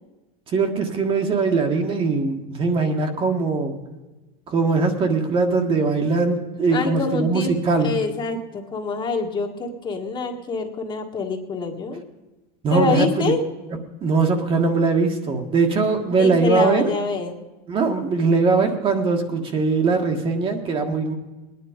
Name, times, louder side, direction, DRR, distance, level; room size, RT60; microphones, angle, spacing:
voice 1, 0.5-3.8 4.5-7.9 12.6-13.3 14.0-16.9 17.7-21.1, right 4 dB, 30° right, 4 dB, 1.6 m, -21 dB
voice 2, 6.7-7.5 7.8-12.0 12.7-13.4 16.2-17.4, left 4 dB, 25° left, 3 dB, 1.7 m, -26 dB
20.0 x 10.0 x 5.1 m, 1.1 s
supercardioid pair, 140°, 19 cm